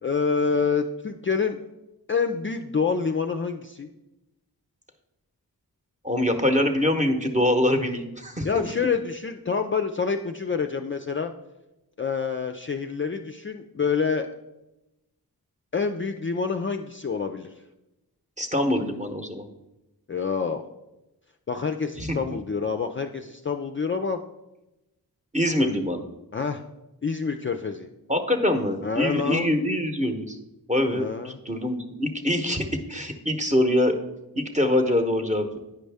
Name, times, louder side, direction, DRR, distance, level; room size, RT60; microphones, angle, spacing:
voice 1, 0.0-1.6 2.1-3.9 8.4-11.3 12.0-14.3 15.7-17.5 20.1-20.6 21.5-24.2 25.6-25.7 26.3-26.6 27.0-27.9 28.8-29.5 30.9-31.4, left 5 dB, 30° left, 6 dB, 0.4 m, -27 dB
voice 2, 6.0-8.7 18.4-19.5 22.0-22.2 25.3-26.0 28.1-30.4 30.7-34.0 34.4-35.6, left 1 dB, 20° right, 4 dB, 0.9 m, -24 dB
9.3 x 5.3 x 3.4 m, 0.95 s
cardioid pair, 50°, 39 cm